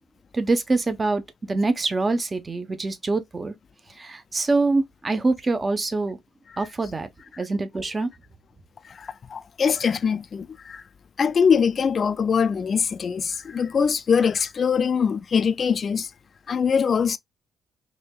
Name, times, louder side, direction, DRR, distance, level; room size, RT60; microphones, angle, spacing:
voice 1, 0.3-1.2 1.5-3.5 4.0-6.2 6.6-7.1 7.4-8.1, right 3 dB, 25° right, 0.9 m, -24 dB
voice 2, 8.9-10.8 11.2-16.1 16.5-17.2, left 6 dB, 45° left, 0.4 m, -23 dB
4.2 x 2.8 x 2.3 m
cardioid pair, 90°, 0 cm